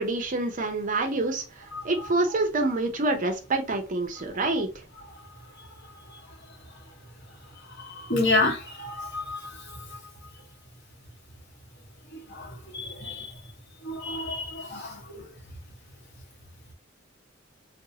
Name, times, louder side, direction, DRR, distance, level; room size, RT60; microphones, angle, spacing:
voice 1, 0.0-4.8, right 2 dB, 40° right, 4 dB, 0.6 m, -27 dB
voice 2, 8.1-9.4 12.7-13.1 13.9-14.9, left 2 dB, 60° left, 1 dB, 1.2 m, -27 dB
2.6 x 2.4 x 3.9 m, 0.32 s
head